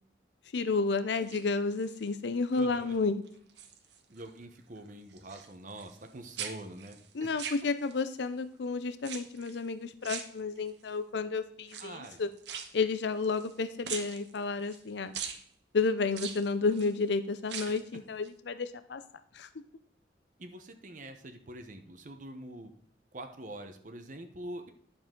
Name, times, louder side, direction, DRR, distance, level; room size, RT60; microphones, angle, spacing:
voice 1, 0.5-3.2 7.1-12.3 12.7-15.1 15.7-19.0 19.3-19.5, left 4 dB, 75° left, 11 dB, 0.6 m, -31 dB
sound 1, 1.1-2.1 2.6-3.0 3.3-4.3 4.5-6.1 6.3-8.1 9.0-9.6 10.0-10.9 11.6-13.6 13.8-14.8 15.1-15.4 16.1-16.9 17.4-17.9 18.2-18.3, right 7 dB, 75° right, 1.2 m, -42 dB
voice 2, 2.5-3.0 4.1-7.3 11.8-12.2 20.4-22.7 23.1-24.7, right 1 dB, 45° right, 6 dB, 0.9 m, -45 dB
10.5 x 7.0 x 3.7 m, 0.63 s
head